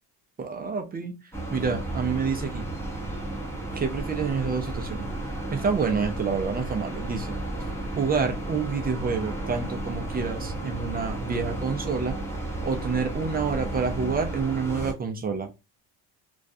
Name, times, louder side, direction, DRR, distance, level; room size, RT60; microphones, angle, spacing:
voice 1, 0.4-1.2 1.5-2.7 3.7-5.1 5.5-7.3 8.0-12.1 12.6-15.5, right 5 dB, 25° right, 5 dB, 0.4 m, -28 dB
sound 1, 1.3-14.9, right 1 dB, 5° left, 0.7 m, -33 dB
2.4 x 2.1 x 2.5 m, 0.26 s
cardioid pair, 115°, 42 cm